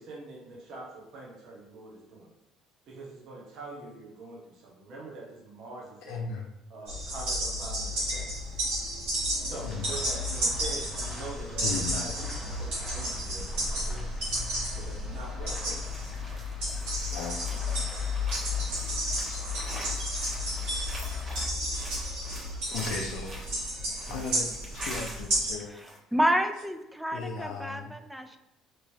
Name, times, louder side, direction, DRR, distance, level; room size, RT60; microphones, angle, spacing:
voice 1, 0.0-2.3 2.9-6.2 6.7-8.3 9.4-14.1 14.7-15.8, right 2 dB, 65° right, -3 dB, 0.8 m, -44 dB
voice 2, 6.0-6.5 9.6-9.9 11.6-12.0 17.1-17.6 19.3-19.4 22.7-23.3 24.1-24.5 24.7-25.7 27.1-27.9, left 5 dB, 75° left, -1 dB, 0.4 m, -36 dB
sound 1, 6.9-25.5, left 1 dB, 80° right, 1.4 m, -32 dB
sound 2, 9.5-21.4, left 1 dB, 10° left, 0.9 m, -47 dB
sound 3, 15.8-25.3 25.6-26.0, equal, 35° right, 1.1 m, -45 dB
voice 3, 26.1-28.4, equal, 5° right, 7 dB, 0.4 m, -29 dB
3.0 x 2.9 x 2.7 m, 0.91 s
supercardioid pair, 80°, 0 cm